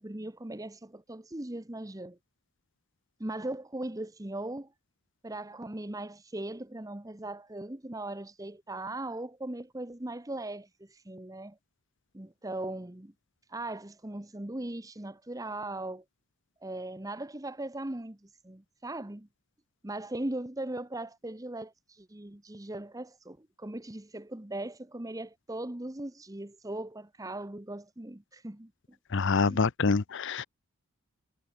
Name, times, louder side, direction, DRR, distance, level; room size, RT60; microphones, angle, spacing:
voice 1, 0.0-2.2 3.2-4.7 5.2-11.6 12.1-13.1 13.5-16.0 16.6-19.3 19.8-28.7 29.5-29.6, right 1 dB, 15° right, 0.9 m, -39 dB
voice 2, 29.1-30.4, left 4 dB, 55° left, 0.7 m, -26 dB
head